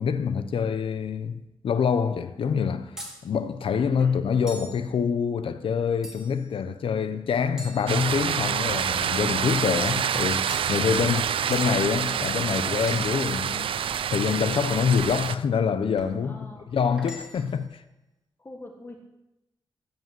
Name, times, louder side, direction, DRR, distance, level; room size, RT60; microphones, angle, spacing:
voice 1, 0.0-3.0 3.2-11.2 11.5-13.7 14.1-16.4 16.7-17.8, left 6 dB, 90° left, 0.8 m, -26 dB
sound 1, 3.0-3.2 4.5-4.8 6.0-6.5 7.6-8.5 9.5-9.8 10.5-10.7 11.5-11.7 12.9-13.1 13.9-14.1 15.0-15.3 16.0-16.2 17.0-17.6, equal, 5° right, 2.6 m, -42 dB
sound 2, 7.9-15.4, right 8 dB, 85° right, 0.4 m, -27 dB
voice 2, 10.9-11.8 16.2-16.7 18.4-19.0, left 2 dB, 25° left, 1.6 m, -45 dB
15.0 x 5.4 x 7.7 m
wide cardioid pair, 130°, 9 cm